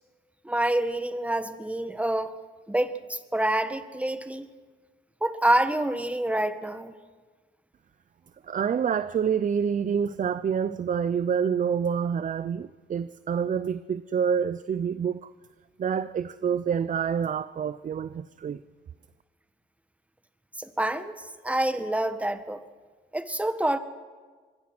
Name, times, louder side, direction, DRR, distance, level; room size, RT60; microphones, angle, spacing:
voice 1, 0.4-2.4 2.7-4.5 5.2-6.9 20.6-22.6 23.1-23.8, right 1 dB, 5° right, 1.6 m, -27 dB
voice 2, 8.4-15.3 15.8-18.6, right 7 dB, 40° right, 0.6 m, -27 dB
25.5 x 22.0 x 6.1 m
cardioid pair, 90°, 20 cm